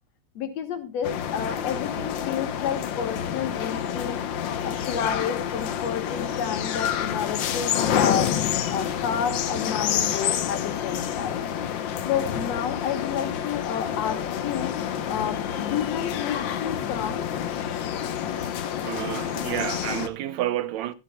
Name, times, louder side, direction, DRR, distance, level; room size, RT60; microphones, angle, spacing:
voice 1, 0.4-4.2 4.6-11.5 12.1-17.3, left 8 dB, 65° left, 2.6 m, -30 dB
sound 1, 1.0-20.1, left 9 dB, 80° left, 1.0 m, -28 dB
voice 2, 18.8-20.9, right 13 dB, 75° right, 2.0 m, -29 dB
13.5 x 13.0 x 2.3 m
omnidirectional pair, 3.4 m